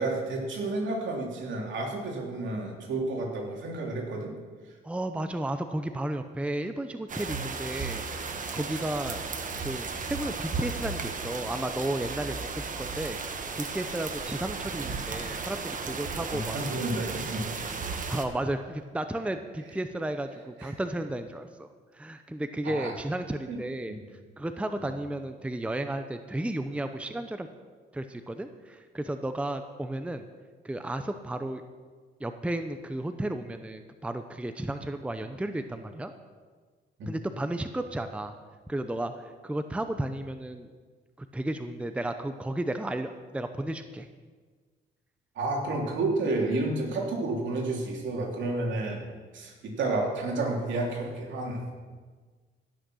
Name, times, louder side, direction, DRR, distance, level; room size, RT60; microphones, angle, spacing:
voice 1, 0.0-4.3 16.3-17.8 20.6-20.7 22.6-22.9 23.5-23.6 37.0-37.1 45.4-49.0 49.3-51.6, right 2 dB, 70° right, 0 dB, 2.9 m, -31 dB
voice 2, 4.8-9.2 9.6-13.2 13.6-16.6 18.1-24.0 24.4-27.5 27.9-30.2 30.6-31.6 32.2-36.1 37.0-38.3 38.7-40.7 41.2-44.1, right 1 dB, 5° right, 8 dB, 0.7 m, -33 dB
sound 1, 7.1-18.2, right 4 dB, 40° right, 1.3 m, -35 dB
15.5 x 6.6 x 6.3 m, 1.5 s
cardioid pair, 90°, 20 cm